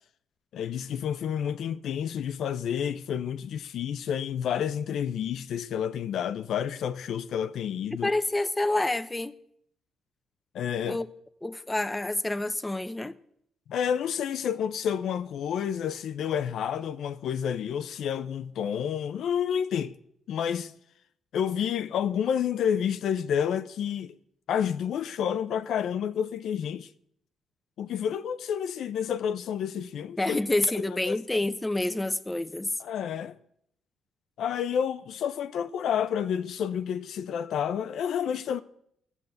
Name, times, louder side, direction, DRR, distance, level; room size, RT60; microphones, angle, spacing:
voice 1, 0.5-8.1 10.5-11.0 13.7-19.9 20.3-20.7 21.3-24.2 24.5-26.9 27.8-30.4 30.7-31.2 32.8-33.4 34.4-38.6, left 8 dB, 75° left, 0.7 m, -29 dB
voice 2, 7.9-9.3 10.8-11.1 11.4-13.2 30.2-32.7, left 2 dB, 15° left, 0.8 m, -28 dB
15.0 x 7.3 x 7.9 m
cardioid pair, 90°, 0 cm